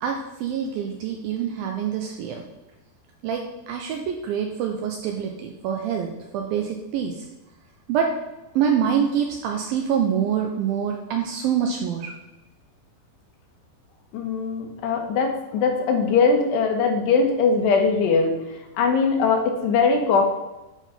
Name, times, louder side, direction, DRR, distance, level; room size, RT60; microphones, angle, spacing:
voice 1, 0.0-2.4 3.2-6.1 6.3-7.3 7.9-8.1 8.6-12.1, right 8 dB, 80° right, 2 dB, 2.1 m, -25 dB
voice 2, 14.1-18.4 18.8-20.2, left 4 dB, 80° left, 3 dB, 3.2 m, -21 dB
9.0 x 4.2 x 5.5 m, 0.99 s
omnidirectional pair, 4.9 m